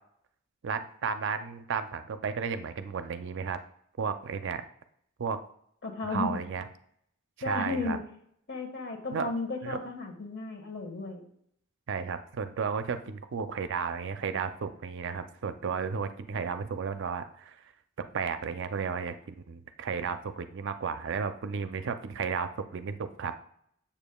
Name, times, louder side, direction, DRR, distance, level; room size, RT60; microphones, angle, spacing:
voice 1, 0.6-3.6 4.0-4.6 5.2-5.4 6.1-6.7 7.4-8.0 9.1-9.3 9.6-9.8 11.9-17.6 18.1-23.3, right 6 dB, 60° right, 10 dB, 0.4 m, -33 dB
voice 2, 5.8-6.4 7.4-8.0 8.5-11.2, left 3 dB, 55° left, 3 dB, 1.4 m, -34 dB
7.1 x 7.1 x 2.3 m, 0.69 s
head